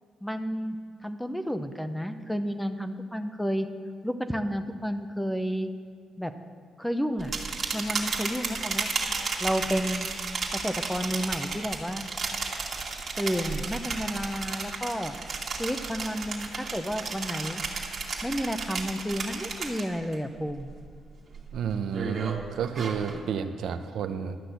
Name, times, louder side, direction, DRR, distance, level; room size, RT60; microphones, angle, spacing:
voice 1, 0.2-0.8 1.0-3.7 4.0-5.7 6.2-6.3 6.8-7.3 7.7-8.9 9.4-10.1 10.5-12.0 13.2-15.1 15.6-17.6 18.2-20.7, equal, 5° left, 9 dB, 0.6 m, -31 dB
sound 1, 7.2-20.1 20.5-20.9 21.3-23.2, right 4 dB, 45° right, 1.7 m, -33 dB
voice 2, 21.5-24.4, right 7 dB, 75° right, 8 dB, 0.6 m, -30 dB
12.0 x 6.1 x 8.0 m, 2.1 s
cardioid pair, 115°, 0 cm